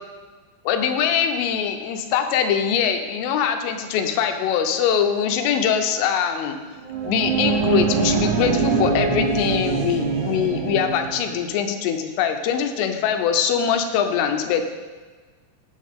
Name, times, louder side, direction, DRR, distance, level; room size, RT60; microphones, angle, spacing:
voice 1, 0.7-6.6 7.0-14.6, left 8 dB, 85° left, 6 dB, 3.4 m, -22 dB
sound 1, 6.8-11.4, right 5 dB, 75° right, 2.6 m, -23 dB
14.0 x 8.6 x 3.6 m, 1.4 s
omnidirectional pair, 5.6 m